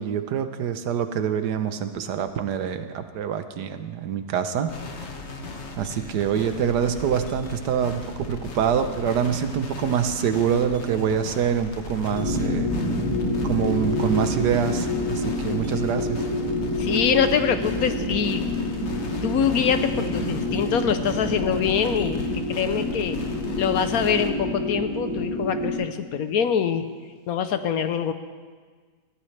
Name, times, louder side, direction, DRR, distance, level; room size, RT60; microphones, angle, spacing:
voice 1, 0.0-4.7 5.8-12.7 13.4-16.2, right 8 dB, 80° right, 9 dB, 1.4 m, -25 dB
sound 1, 4.7-24.3, left 4 dB, 45° left, 1.3 m, -38 dB
sound 2, 12.1-25.7, left 1 dB, 25° left, 2.8 m, -27 dB
voice 2, 16.8-18.5 19.2-22.2 22.5-23.2 23.6-26.9 27.3-28.1, left 7 dB, 65° left, 10 dB, 1.1 m, -24 dB
21.0 x 14.5 x 3.3 m, 1.5 s
omnidirectional pair, 1.7 m